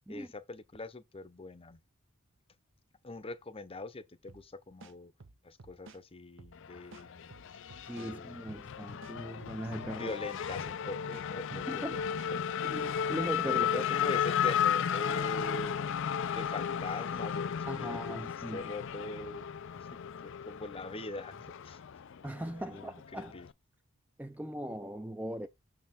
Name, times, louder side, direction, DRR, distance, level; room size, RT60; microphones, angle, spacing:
voice 1, 0.1-1.8 3.0-5.1 5.4-7.3 8.0-8.5 9.7-12.0 12.3-12.4 13.4-16.0 16.3-19.9 20.2-21.8 22.6-23.5, left 2 dB, 25° left, 0.8 m, -42 dB
sound 1, 4.3-4.5 4.8-6.0 6.4-6.6 6.9-8.1 8.5-8.7 9.0-10.2 10.6-10.8 11.1-12.3, right 3 dB, 65° right, 0.9 m, -53 dB
Race car auto racing / Accelerating revving vroom, 6.5-23.5, left 8 dB, 65° left, 0.5 m, -34 dB
voice 2, 7.9-10.2 11.5-12.0 12.6-13.9 17.7-18.7 22.2-23.3 24.2-25.5, right 1 dB, 10° right, 0.5 m, -39 dB
6.8 x 4.3 x 3.7 m
head